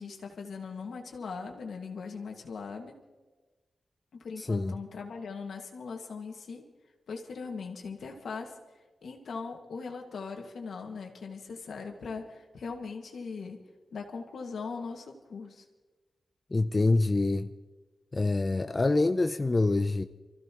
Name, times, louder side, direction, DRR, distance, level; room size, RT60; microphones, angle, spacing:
voice 1, 0.0-2.9 4.1-6.6 7.1-8.5 9.0-13.6 13.9-15.6, left 5 dB, 85° left, 1.9 m, -40 dB
voice 2, 4.4-4.8 16.5-17.5 18.1-20.0, left 2 dB, 35° left, 0.6 m, -26 dB
25.5 x 15.0 x 3.0 m
cardioid pair, 60°, 0 cm